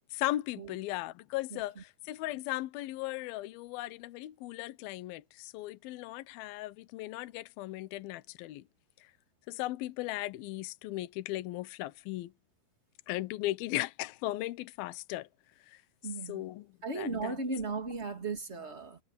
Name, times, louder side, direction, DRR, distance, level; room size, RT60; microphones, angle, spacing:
voice 1, 0.1-8.6 9.5-12.3 13.1-15.3 15.7-15.8 16.3-17.4, left 17 dB, 80° left, 2.1 m, -37 dB
voice 2, 1.5-1.8 16.0-16.4 16.8-19.0, right 3 dB, 20° right, 2.1 m, -36 dB
omnidirectional pair, 5.6 m